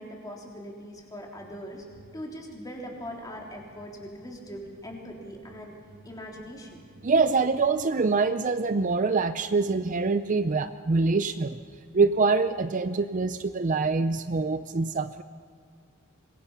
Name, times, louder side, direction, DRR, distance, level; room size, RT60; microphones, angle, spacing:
voice 1, 0.0-1.9 2.1-5.8 6.0-6.8, equal, 15° left, -1 dB, 3.6 m, -41 dB
voice 2, 7.0-11.6 11.9-15.2, right 4 dB, 35° right, 11 dB, 0.5 m, -25 dB
26.0 x 21.5 x 5.7 m, 2.1 s
head